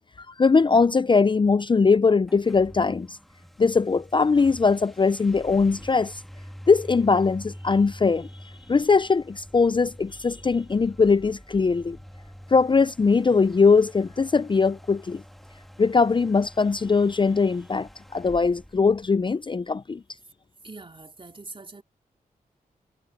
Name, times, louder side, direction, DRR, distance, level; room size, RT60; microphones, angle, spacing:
voice 1, 0.2-3.2 3.6-6.2 6.7-8.3 8.7-12.0 12.5-15.2 15.8-20.0, left 4 dB, 30° left, 0.5 m, -21 dB
sound 1, 2.2-19.7, equal, ahead, 2.1 m, -46 dB
voice 2, 20.6-21.8, right 3 dB, 35° right, 3.7 m, -43 dB
cardioid pair, 50°, 15 cm